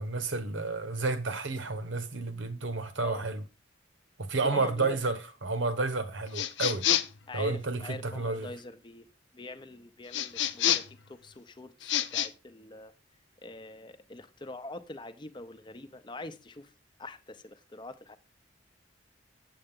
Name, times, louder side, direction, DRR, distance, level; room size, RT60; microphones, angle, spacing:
voice 1, 0.0-3.4 4.2-6.8 7.3-8.5, right 3 dB, 75° right, 1.1 m, -31 dB
voice 2, 4.4-5.0 7.3-9.1 9.3-12.9 13.4-16.7 17.0-18.2, left 2 dB, 25° left, 0.6 m, -44 dB
sound 1, 6.3-7.2 10.1-11.0 11.8-12.3, left 11 dB, 65° left, 0.5 m, -28 dB
7.8 x 7.8 x 3.6 m
head